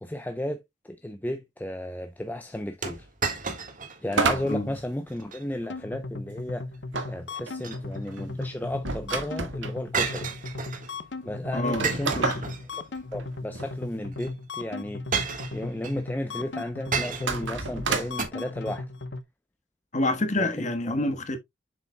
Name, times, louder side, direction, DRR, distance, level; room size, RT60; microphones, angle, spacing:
voice 1, 0.0-3.1 4.0-6.7 7.1-10.3 11.2-12.3 13.1-18.9 20.4-21.1, left 1 dB, 10° left, 0.6 m, -34 dB
sound 1, 2.8-4.0 4.4-4.5 5.1-5.4 7.3-8.2 9.9-10.9 11.8-13.0 14.1-14.3 15.1-16.0 16.9-17.5 18.2-18.3, right 5 dB, 45° right, 1.6 m, -32 dB
sound 2, 4.1-5.7 6.9-9.8 10.5-10.6 10.8-10.9 11.5-13.7 17.1-18.3, right 4 dB, 85° right, 1.7 m, -30 dB
sound 3, 5.7-19.2, left 3 dB, 65° left, 1.0 m, -37 dB
voice 2, 11.5-12.4 19.9-21.4, left 2 dB, 40° left, 1.4 m, -28 dB
7.4 x 6.9 x 2.2 m
head